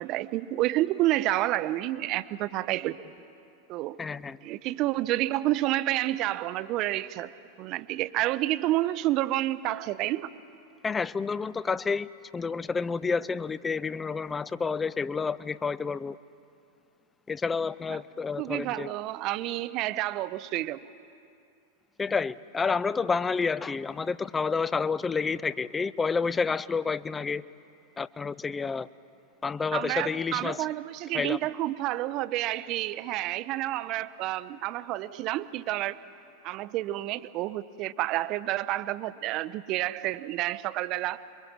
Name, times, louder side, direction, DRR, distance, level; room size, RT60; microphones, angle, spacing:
voice 1, 0.0-3.0 3.7-4.0 4.4-7.3 7.6-10.3 17.9-18.0 18.4-20.8 29.7-36.0 36.4-41.2, right 15 dB, 40° right, 16 dB, 0.7 m, -29 dB
voice 2, 4.0-4.4 10.8-12.1 12.3-16.2 17.3-18.9 22.0-27.4 28.0-28.9 29.4-30.7 31.1-31.4, left 5 dB, 15° left, 18 dB, 0.5 m, -29 dB
26.0 x 23.5 x 6.0 m, 2.6 s
figure-of-eight pair, 90°, 0 cm